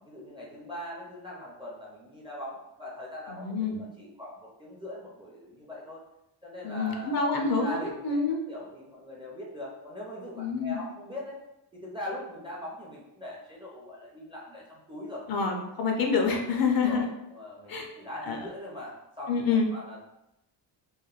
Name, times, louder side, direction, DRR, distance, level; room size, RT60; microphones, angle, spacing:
voice 1, 0.1-6.0 6.4-8.2 8.5-11.4 11.7-15.3 16.8-20.0, left 1 dB, 10° right, -5 dB, 0.4 m, -41 dB
voice 2, 3.3-3.8 6.6-8.4 10.4-10.8 15.3-17.1 17.7-17.9 18.3-18.4 19.3-19.7, left 4 dB, 50° left, 2 dB, 0.5 m, -27 dB
3.0 x 2.0 x 2.3 m, 0.87 s
cardioid pair, 115°, 49 cm